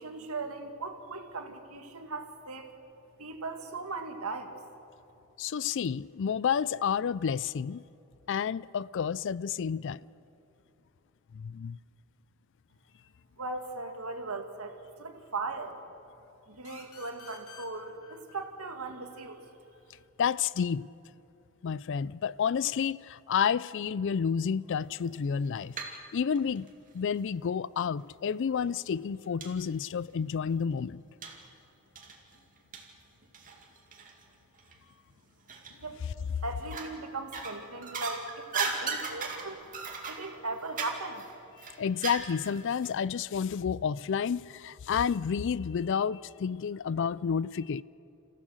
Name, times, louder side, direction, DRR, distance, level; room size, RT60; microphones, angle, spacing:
voice 1, 0.0-2.7 3.2-4.5 13.4-14.7 15.0-15.8 16.5-19.4 35.8-36.0 36.4-39.6 40.1-41.2, right 3 dB, 80° right, 2.0 m, -38 dB
voice 2, 5.4-7.8 8.3-10.0 11.3-11.8 20.2-20.9 21.6-25.8 26.1-26.7 26.9-31.0 41.8-47.8, left 7 dB, 55° left, 0.4 m, -30 dB
sound 1, 16.6-20.0, left 6 dB, 80° left, 2.7 m, -53 dB
sound 2, 25.2-26.0 26.3-27.4 28.1-28.2 28.7-28.8 29.4-29.5 29.9-30.0 31.2-31.5 32.0-34.2 34.6-34.7 35.5-36.0 36.6-37.0 37.3-42.6 42.8-42.9, right 4 dB, 40° right, 2.4 m, -37 dB
29.5 x 15.0 x 6.4 m
head